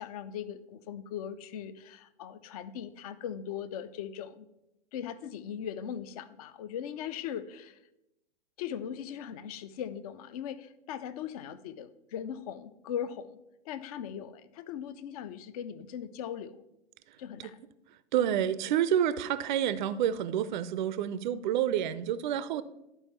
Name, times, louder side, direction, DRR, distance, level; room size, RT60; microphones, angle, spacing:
voice 1, 0.0-4.5 4.9-7.8 8.6-13.4 13.6-16.6 17.2-17.6, left 9 dB, 35° left, 14 dB, 0.4 m, -39 dB
voice 2, 18.1-22.6, right 10 dB, 45° right, 15 dB, 0.4 m, -28 dB
11.0 x 4.5 x 4.3 m, 0.90 s
figure-of-eight pair, 110°, 34 cm